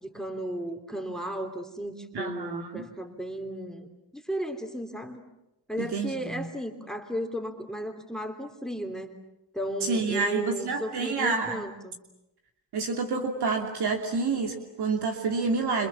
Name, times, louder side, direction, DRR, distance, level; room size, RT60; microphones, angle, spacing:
voice 1, 0.0-3.9 4.1-5.2 5.7-9.2 9.5-12.0, equal, ahead, 6 dB, 3.3 m, -34 dB
voice 2, 2.1-2.9 5.8-6.5 9.8-11.6 12.7-15.9, right 4 dB, 65° right, 3 dB, 2.9 m, -28 dB
28.5 x 26.5 x 7.3 m, 0.90 s
cardioid pair, 70°, 42 cm